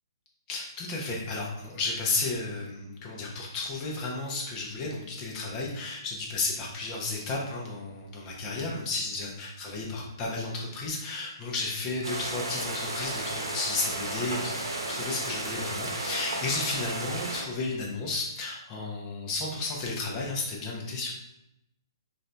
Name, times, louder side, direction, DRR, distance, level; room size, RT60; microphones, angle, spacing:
voice 1, 0.5-14.6 14.9-21.1, left 3 dB, 25° left, -2 dB, 1.0 m, -33 dB
sound 1, 12.0-17.4, right 2 dB, 80° right, 0.9 m, -33 dB
4.0 x 2.6 x 3.3 m, 0.87 s
hypercardioid pair, 135°, 2 cm